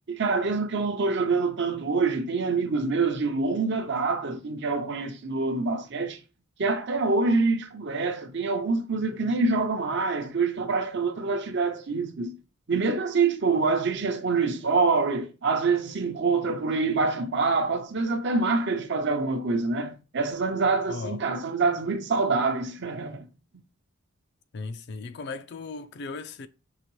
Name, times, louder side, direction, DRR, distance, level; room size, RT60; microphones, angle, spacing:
voice 1, 0.1-6.2 6.6-12.3 12.7-23.3, right 4 dB, 55° right, 0.7 m, -26 dB
voice 2, 20.9-21.2 24.5-26.5, left 4 dB, 50° left, 0.4 m, -36 dB
5.7 x 2.9 x 3.1 m
head